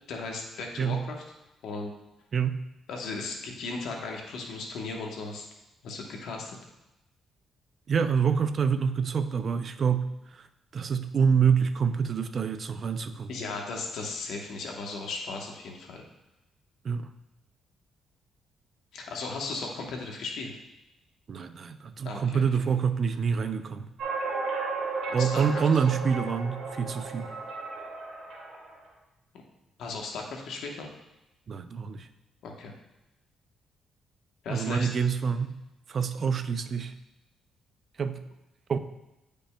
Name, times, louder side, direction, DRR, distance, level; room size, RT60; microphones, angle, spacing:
voice 1, 0.1-1.2 1.6-1.9 2.9-5.5 5.8-6.6 13.3-16.0 18.9-20.5 22.0-22.4 25.1-25.4 29.8-30.9 32.4-32.7 34.4-34.9, left 3 dB, 75° left, 1 dB, 1.1 m, -36 dB
voice 2, 7.9-10.5 10.7-13.3 16.8-17.1 21.3-23.9 25.1-27.3 31.5-32.1 34.5-35.6 35.9-36.9 38.0-38.2 38.7-38.8, right 6 dB, 45° right, 10 dB, 0.4 m, -26 dB
sound 1, 24.0-28.8, right 4 dB, 70° right, 2.2 m, -34 dB
9.8 x 5.2 x 2.2 m, 0.94 s
cardioid pair, 90°, 0 cm